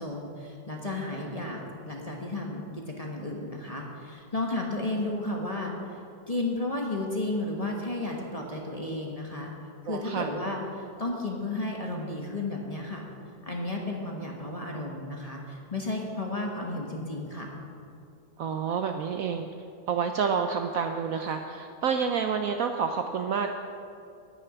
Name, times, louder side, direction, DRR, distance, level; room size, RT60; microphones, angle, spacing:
voice 1, 0.0-5.7 6.3-9.5 9.8-13.0 13.4-17.5, left 2 dB, 25° left, -1 dB, 1.0 m, -33 dB
voice 2, 9.9-10.3 18.4-19.5 19.9-23.5, right 6 dB, 90° right, 6 dB, 0.7 m, -29 dB
10.5 x 6.6 x 8.9 m, 2.6 s
omnidirectional pair, 2.1 m